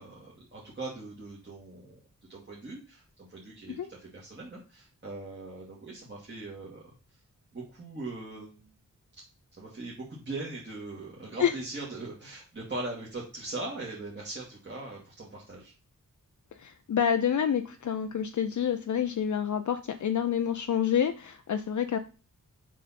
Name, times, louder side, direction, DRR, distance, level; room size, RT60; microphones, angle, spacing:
voice 1, 0.0-2.0 2.3-6.8 7.5-8.7 9.6-15.7, right 2 dB, 35° right, -5 dB, 2.0 m, -40 dB
voice 2, 16.6-22.0, left 8 dB, 60° left, 7 dB, 0.6 m, -28 dB
7.2 x 5.6 x 4.2 m, 0.34 s
wide cardioid pair, 145°, 33 cm